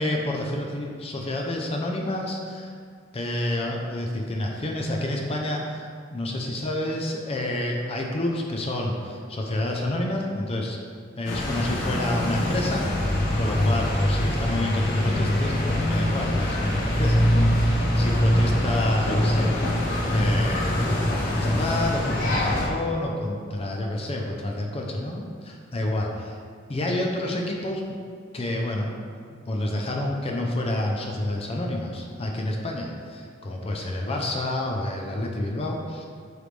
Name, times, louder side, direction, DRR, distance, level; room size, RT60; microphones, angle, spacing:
voice 1, 0.0-2.7 3.1-5.9 6.1-10.8 11.2-19.6 20.0-26.4 26.7-27.8 28.3-28.9 29.5-36.1, left 1 dB, 30° left, 0 dB, 0.6 m, -29 dB
sound 1, 11.2-22.7, left 1 dB, 55° left, 1.3 m, -23 dB
9.0 x 3.4 x 3.3 m, 2.1 s
head